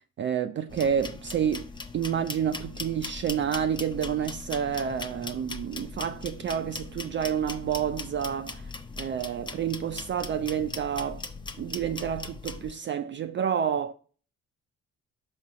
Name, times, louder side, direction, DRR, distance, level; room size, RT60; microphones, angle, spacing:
voice 1, 0.2-1.7 1.9-8.6 9.0-11.2 11.6-13.9, right 8 dB, 35° right, 0.4 m, -29 dB
sound 1, 0.7-12.7, left 3 dB, 15° left, 0.6 m, -39 dB
5.3 x 4.0 x 4.9 m
hypercardioid pair, 50°, 37 cm